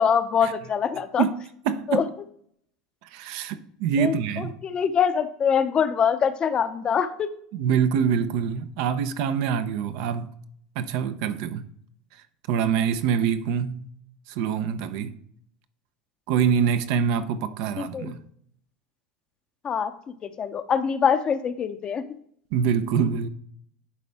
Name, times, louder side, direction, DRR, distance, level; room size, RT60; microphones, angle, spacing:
voice 1, 0.0-1.2 1.9-2.0 4.0-4.1 4.6-7.3 17.8-18.1 19.6-19.9 20.2-22.0, left 7 dB, 35° left, 0.7 m, -24 dB
voice 2, 1.6-2.1 3.0-4.5 7.5-10.3 10.7-11.6 12.1-13.9 14.3-15.2 16.3-18.2 22.5-23.3, right 7 dB, 65° right, 0.7 m, -25 dB
11.0 x 4.2 x 3.5 m
hypercardioid pair, 95°, 3 cm